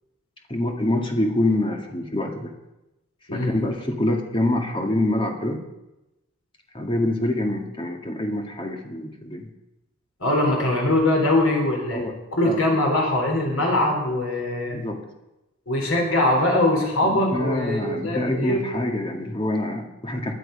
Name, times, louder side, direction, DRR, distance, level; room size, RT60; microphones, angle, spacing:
voice 1, 0.5-2.5 3.3-5.6 6.7-9.5 11.9-12.2 12.4-12.6 14.7-15.0 17.0-20.3, left 1 dB, 25° left, 2 dB, 2.2 m, -26 dB
voice 2, 10.2-12.0 12.3-14.8 15.7-18.7, left 1 dB, 85° left, 0 dB, 4.5 m, -22 dB
19.5 x 11.0 x 5.7 m, 0.96 s
head